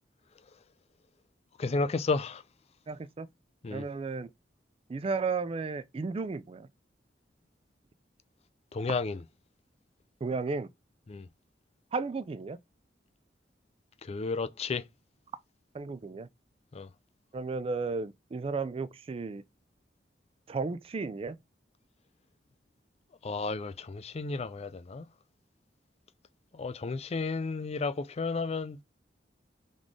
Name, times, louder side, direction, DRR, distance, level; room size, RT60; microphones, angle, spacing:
voice 1, 1.6-2.4 3.6-3.9 8.7-9.2 11.1-11.3 14.0-14.8 16.7-16.9 23.2-25.0 26.5-28.8, left 3 dB, 35° left, 0.4 m, -32 dB
voice 2, 2.9-3.3 3.7-4.3 4.9-6.7 10.2-10.7 11.9-12.6 15.7-16.3 17.3-19.4 20.5-21.4, right 4 dB, 35° right, 0.3 m, -34 dB
3.9 x 3.1 x 3.6 m
head